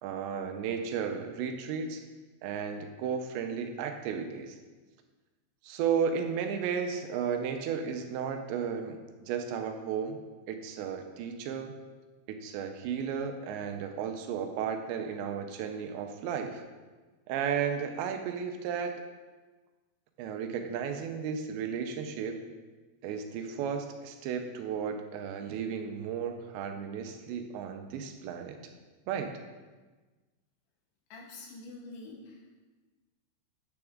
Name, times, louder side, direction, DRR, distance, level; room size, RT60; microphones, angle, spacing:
voice 1, 0.0-2.0 2.4-4.6 5.6-10.2 10.5-11.7 12.3-16.6 17.3-18.9 20.2-22.4 23.0-28.6 29.1-29.3, right 7 dB, 85° right, 5 dB, 2.9 m, -34 dB
voice 2, 31.1-32.6, left 3 dB, 80° left, -2 dB, 3.9 m, -46 dB
9.6 x 7.8 x 3.6 m, 1.3 s
omnidirectional pair, 5.2 m